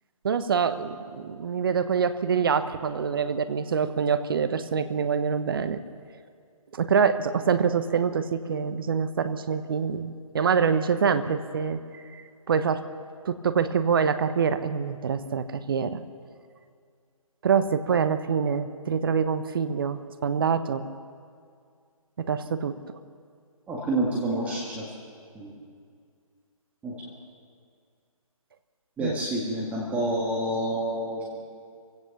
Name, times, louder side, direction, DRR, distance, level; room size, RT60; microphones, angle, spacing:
voice 1, 0.2-5.8 6.7-11.8 12.1-12.8 13.2-16.0 17.4-20.9 22.2-22.7 29.0-29.1, right 6 dB, 40° right, 11 dB, 1.0 m, -25 dB
voice 2, 23.7-24.9 25.4-25.5 26.8-26.9 29.0-31.4, right 1 dB, 10° right, -5 dB, 1.9 m, -28 dB
26.0 x 16.5 x 7.0 m, 2.2 s
figure-of-eight pair, 150°, 18 cm